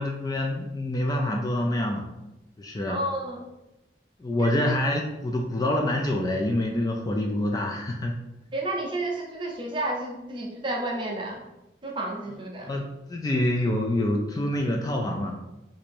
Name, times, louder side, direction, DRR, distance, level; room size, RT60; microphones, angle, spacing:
voice 1, 0.0-2.1 2.6-3.0 4.2-8.2 12.7-15.4, left 1 dB, 20° left, 1 dB, 0.3 m, -26 dB
voice 2, 2.9-3.5 4.4-4.5 8.5-11.4 11.8-12.7, right 1 dB, 25° right, 0 dB, 0.6 m, -31 dB
2.9 x 2.6 x 4.4 m, 0.95 s
head